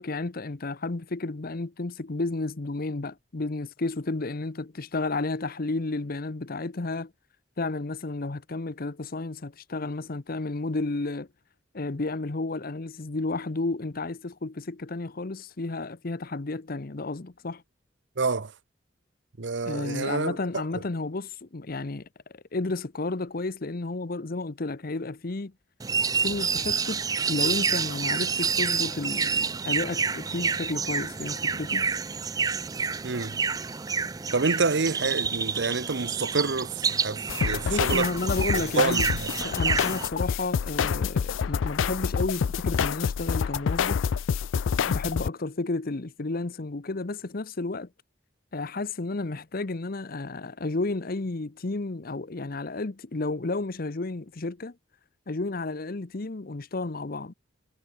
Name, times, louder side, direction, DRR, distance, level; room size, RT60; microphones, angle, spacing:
voice 1, 0.0-7.1 7.6-11.3 11.7-17.6 19.7-22.1 22.3-25.5 26.1-27.0 27.3-31.9 37.6-39.0 39.4-44.0 44.8-47.9 48.5-54.7 55.3-57.3, left 2 dB, 50° left, 0.8 m, -32 dB
voice 2, 18.2-18.5 19.4-20.4 20.7-20.8 33.0-33.4 34.3-38.1 38.4-38.5 38.7-39.3, right 4 dB, 65° right, 0.9 m, -28 dB
sound 1, 25.8-40.1, right 5 dB, 20° right, 0.4 m, -28 dB
sound 2, 37.3-45.3, left 7 dB, 80° left, 0.4 m, -27 dB
head